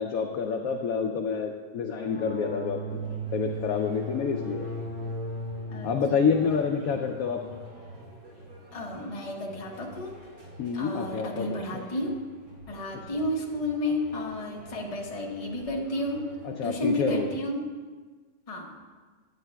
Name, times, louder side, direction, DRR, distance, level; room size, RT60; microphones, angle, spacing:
voice 1, 0.0-4.7 5.8-7.4 10.6-11.8 16.4-17.3, left 5 dB, 70° left, 3 dB, 0.8 m, -28 dB
sound 1, 1.9-10.0, equal, 20° right, 2.6 m, -38 dB
sound 2, 2.9-17.2, equal, 60° right, 2.4 m, -49 dB
voice 2, 6.3-6.6 8.7-10.1 10.7-12.2 12.7-16.3 16.6-17.7 18.5-18.8, left 1 dB, 25° left, -1 dB, 0.8 m, -32 dB
9.7 x 9.4 x 2.3 m, 1.4 s
omnidirectional pair, 1.9 m